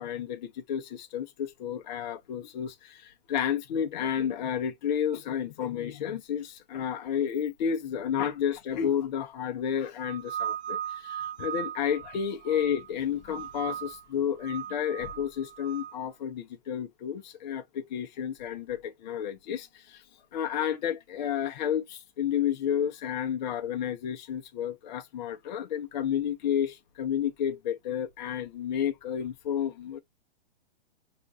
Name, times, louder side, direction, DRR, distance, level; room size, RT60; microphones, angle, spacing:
voice 1, 0.0-20.0 20.3-30.0, left 9 dB, 45° left, 0.7 m, -31 dB
sound 1, 10.0-12.9 13.3-14.0 14.4-15.9, right 10 dB, 80° right, 0.9 m, -37 dB
5.8 x 2.4 x 2.5 m
hypercardioid pair, 155°, 32 cm